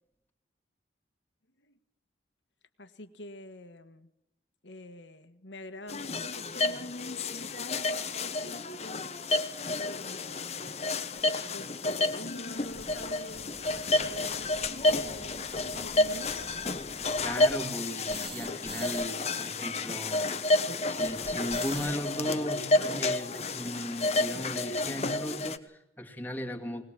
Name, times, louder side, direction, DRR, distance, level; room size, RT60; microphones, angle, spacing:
voice 1, 2.8-4.1 4.6-9.0 9.7-10.7 11.5-15.5 15.7-16.8, left 1 dB, 80° left, 10 dB, 1.6 m, -47 dB
sound 1, 5.9-25.6, left 2 dB, 35° left, 1.2 m, -30 dB
sound 2, 10.4-10.5 11.2-11.3 11.5-11.6 11.9-12.0 12.4-19.1 19.3-19.4 19.6-22.0, right 2 dB, 30° right, 2.3 m, -47 dB
voice 2, 17.2-26.8, equal, 10° left, 2 dB, 2.3 m, -37 dB
21.0 x 20.0 x 7.6 m, 0.84 s
head